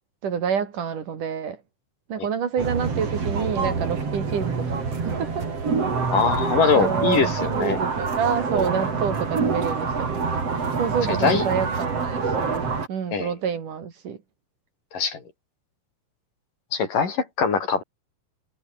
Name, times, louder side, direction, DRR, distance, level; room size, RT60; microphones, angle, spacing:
voice 1, 0.2-1.6 2.1-4.8 5.0-5.4 6.7-10.2 10.8-14.2, right 7 dB, 70° right, 4.5 m, -28 dB
sound 1, 2.6-12.9, right 5 dB, 50° right, 5.0 m, -26 dB
voice 2, 6.1-7.8 11.1-11.4 13.1-13.3 14.9-15.2 16.7-17.8, left 5 dB, 80° left, 6.2 m, -22 dB
omnidirectional pair, 3.8 m